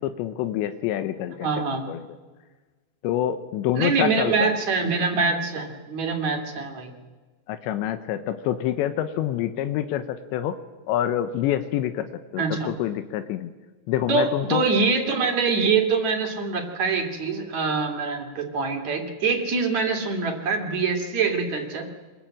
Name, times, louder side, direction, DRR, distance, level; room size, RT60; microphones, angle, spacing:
voice 1, 0.0-2.1 3.0-4.6 7.5-10.6 10.9-13.5 13.9-14.7, left 11 dB, 85° left, 9 dB, 3.3 m, -27 dB
voice 2, 1.4-1.8 3.7-6.9 12.4-12.7 14.1-21.9, right 4 dB, 45° right, 4 dB, 3.4 m, -24 dB
26.0 x 22.0 x 9.0 m, 1.3 s
omnidirectional pair, 5.0 m